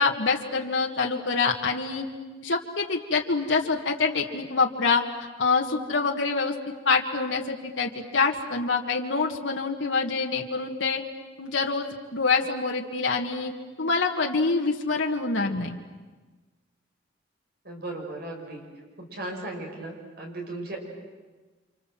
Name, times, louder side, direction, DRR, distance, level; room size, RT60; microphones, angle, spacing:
voice 1, 0.0-2.1 2.4-5.0 5.4-6.5 6.9-11.0 11.4-13.5 13.8-15.8, left 4 dB, 80° left, 1 dB, 1.9 m, -26 dB
voice 2, 17.6-18.6 19.1-20.8, right 2 dB, 55° right, 1 dB, 6.5 m, -36 dB
29.5 x 26.5 x 7.7 m, 1.3 s
head